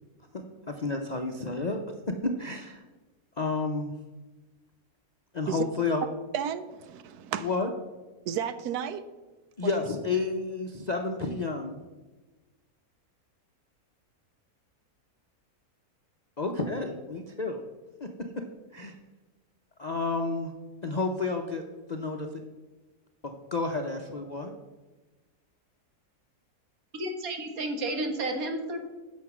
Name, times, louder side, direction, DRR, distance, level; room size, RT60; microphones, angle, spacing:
voice 1, 0.3-1.8 2.2-2.8 3.4-3.9 5.3-6.1 7.4-7.7 9.6-11.8 16.4-17.6 18.0-18.1 18.7-18.9 19.8-20.5 20.8-21.6 21.9-22.2 23.2-24.5, left 3 dB, 45° left, 3 dB, 0.5 m, -30 dB
voice 2, 6.3-7.5 8.3-9.1 9.6-9.7, right 9 dB, 80° right, 12 dB, 1.1 m, -33 dB
voice 3, 26.9-28.8, right 1 dB, 65° right, 5 dB, 1.7 m, -31 dB
9.6 x 6.4 x 6.0 m, 1.2 s
omnidirectional pair, 1.6 m